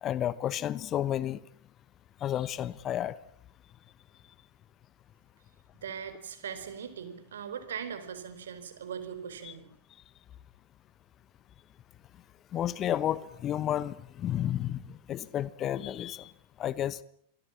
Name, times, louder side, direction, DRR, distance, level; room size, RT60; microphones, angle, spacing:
voice 1, 0.0-1.4 2.2-3.2 9.4-9.5 12.5-16.3 16.6-17.0, left 11 dB, 30° left, 1.1 m, -31 dB
voice 2, 5.8-9.7, right 7 dB, 65° right, 4.5 m, -40 dB
27.5 x 23.5 x 7.6 m
figure-of-eight pair, 90°, 0 cm